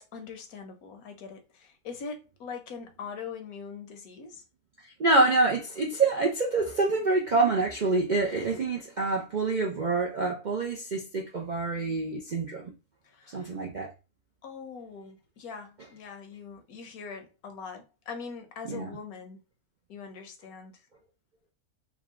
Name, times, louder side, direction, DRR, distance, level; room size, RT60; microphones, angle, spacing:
voice 1, 0.0-4.4 13.0-13.6 14.4-19.4 19.9-20.8, left 5 dB, 75° left, 1.2 m, -42 dB
voice 2, 5.0-12.7 13.3-13.9 18.6-18.9, right 3 dB, 60° right, 0.5 m, -26 dB
3.6 x 2.2 x 3.5 m
omnidirectional pair, 1.6 m